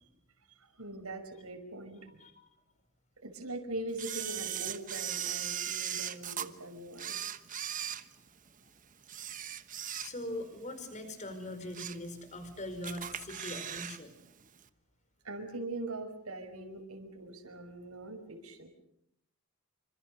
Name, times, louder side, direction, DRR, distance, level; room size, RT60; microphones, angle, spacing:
voice 1, 0.5-2.2 3.2-7.2 13.3-13.4 15.2-18.7, right 2 dB, 80° right, 4 dB, 5.6 m, -42 dB
Camera, 4.0-6.5 6.9-8.6 9.0-10.4 10.8-10.9 11.5-12.1 12.4-12.5 12.8-14.0 14.2-14.3, right 10 dB, 35° right, 1.2 m, -38 dB
voice 2, 10.0-14.1, left 1 dB, 35° left, 9 dB, 5.0 m, -41 dB
28.0 x 26.0 x 6.7 m, 0.76 s
head